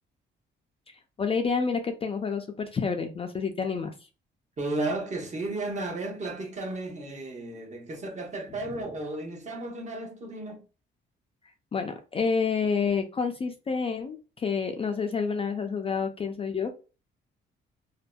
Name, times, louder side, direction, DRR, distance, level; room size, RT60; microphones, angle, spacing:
voice 1, 1.2-3.9 11.7-16.7, left 5 dB, 30° left, 0.3 m, -29 dB
voice 2, 4.6-10.6, right 2 dB, 35° right, 0.8 m, -34 dB
2.6 x 2.1 x 2.2 m
cardioid pair, 90°, 20 cm